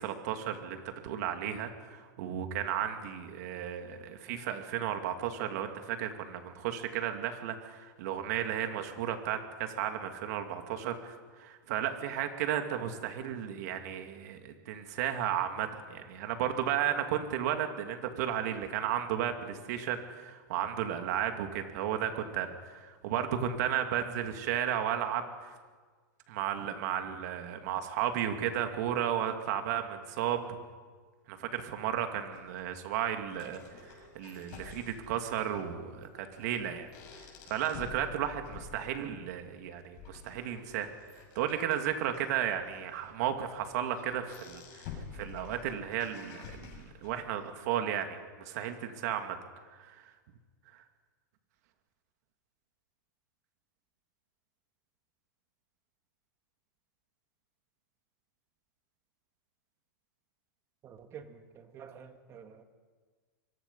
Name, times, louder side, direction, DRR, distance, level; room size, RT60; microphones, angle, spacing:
voice 1, 0.0-25.6 26.3-30.6 31.3-36.9 37.5-40.9 41.3-44.8 45.1-49.4 49.7-50.0, right 10 dB, 55° right, 2.6 m, -34 dB
sound 1, 32.3-47.3, left 6 dB, 45° left, 7.6 m, -50 dB
voice 2, 60.8-62.6, right 7 dB, 25° right, 1.8 m, -49 dB
25.5 x 23.5 x 5.7 m
supercardioid pair, 160°, 10 cm